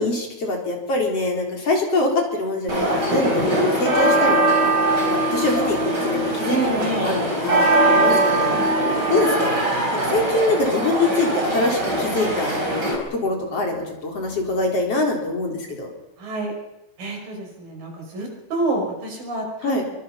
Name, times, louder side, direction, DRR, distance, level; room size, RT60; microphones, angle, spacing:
voice 1, 0.0-4.7 5.1-6.6 6.9-8.6 9.1-9.6 9.9-12.6 13.1-15.9 19.6-19.8, left 2 dB, 45° left, 1 dB, 4.8 m, -24 dB
sound 1, 2.7-13.0, right 1 dB, 30° right, 4.3 m, -21 dB
voice 2, 6.5-7.2 16.2-16.5 17.0-19.8, right 2 dB, 90° right, 1 dB, 7.0 m, -27 dB
25.0 x 23.5 x 5.8 m, 0.88 s
omnidirectional pair, 3.8 m